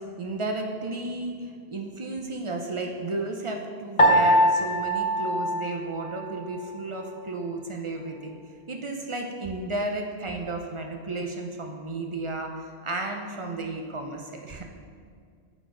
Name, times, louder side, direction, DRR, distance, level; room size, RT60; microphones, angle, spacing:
voice 1, 0.0-8.4 8.7-14.6, right 2 dB, 45° right, 2 dB, 0.4 m, -33 dB
Piano, 4.0-6.5, equal, 35° left, 0.7 m, -22 dB
8.1 x 4.0 x 3.7 m, 2.2 s
omnidirectional pair, 1.1 m